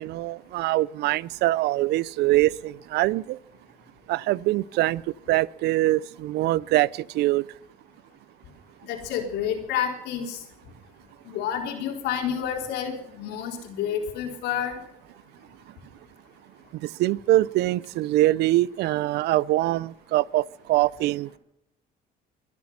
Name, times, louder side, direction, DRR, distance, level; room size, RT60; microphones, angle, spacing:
voice 1, 0.0-3.4 4.1-5.0 5.3-7.4 16.8-21.4, right 16 dB, 80° right, 24 dB, 0.5 m, -23 dB
voice 2, 8.8-10.4 11.2-14.8, left 8 dB, 85° left, 3 dB, 4.0 m, -29 dB
22.5 x 10.5 x 5.8 m, 0.83 s
cardioid pair, 110°, 17 cm